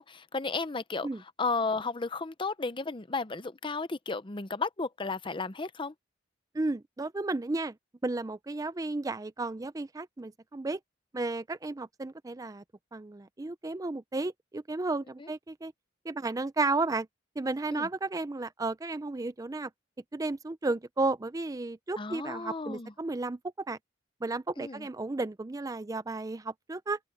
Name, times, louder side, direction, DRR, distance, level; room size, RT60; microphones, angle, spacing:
voice 1, 0.0-1.1 1.4-5.9 15.2-15.3 17.7-17.9 22.0-22.9 24.6-24.9, left 4 dB, 25° left, 0.7 m, -33 dB
voice 2, 6.5-7.7 8.0-10.8 11.1-12.6 12.9-15.7 16.0-17.1 17.4-19.7 20.1-23.8 24.2-27.0, right 3 dB, 20° right, 0.4 m, -33 dB
open air
head